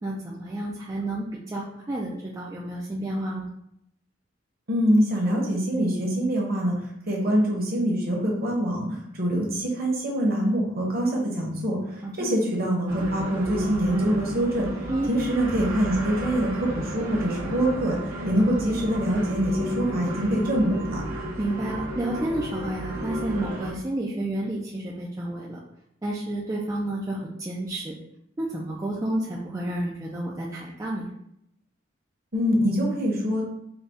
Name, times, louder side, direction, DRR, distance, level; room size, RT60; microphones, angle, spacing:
voice 1, 0.0-3.5 12.0-12.1 14.9-15.1 21.4-25.6 26.0-28.0 28.4-31.1, right 1 dB, 15° right, -4 dB, 0.3 m, -30 dB
voice 2, 4.7-6.7 7.1-14.7 15.1-18.0 18.2-21.0 32.3-33.4, equal, 45° right, -2 dB, 1.0 m, -24 dB
sound 1, 12.9-23.7, right 1 dB, 80° right, 0.9 m, -33 dB
4.0 x 2.3 x 3.5 m, 0.77 s
head